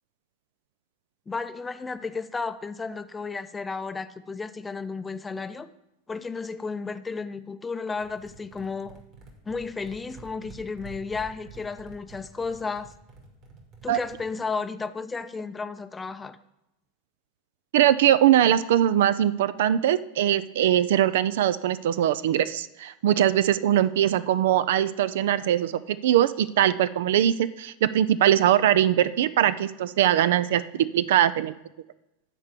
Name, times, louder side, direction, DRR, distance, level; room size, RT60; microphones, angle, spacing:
voice 1, 1.3-5.7 6.1-9.0 9.4-12.9 13.8-16.4, left 4 dB, 15° left, 12 dB, 0.5 m, -33 dB
sound 1, 7.9-14.4, right 3 dB, 45° right, 2.3 m, -48 dB
voice 2, 17.7-31.5, right 11 dB, 65° right, 15 dB, 0.3 m, -21 dB
8.7 x 4.6 x 6.7 m, 0.89 s
hypercardioid pair, 90°, 0 cm